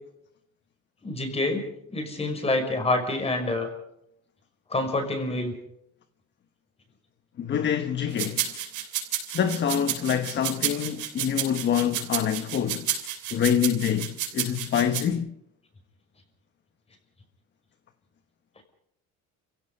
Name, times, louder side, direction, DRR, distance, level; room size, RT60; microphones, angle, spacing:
voice 1, 1.0-1.6 1.9-3.7 4.7-5.5, left 2 dB, 20° left, 5.5 m, -27 dB
voice 2, 7.4-8.5 9.3-12.9 13.3-15.3, left 8 dB, 40° left, 1.2 m, -26 dB
sound 1, 8.2-15.0, right 11 dB, 80° right, 6.9 m, -31 dB
30.0 x 16.5 x 5.5 m
cardioid pair, 145°, 29 cm